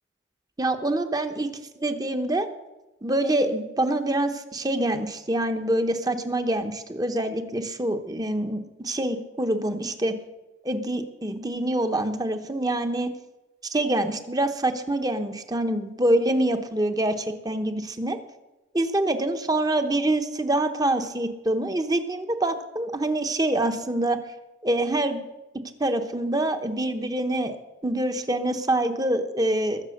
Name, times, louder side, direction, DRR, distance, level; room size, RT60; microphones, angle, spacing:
voice 1, 0.6-1.5 1.8-2.5 3.0-10.1 10.6-13.1 13.7-18.2 18.7-24.2 24.6-25.2 25.8-27.6 27.8-29.8, right 1 dB, 20° right, 7 dB, 1.0 m, -25 dB
21.5 x 7.4 x 6.6 m, 1.0 s
head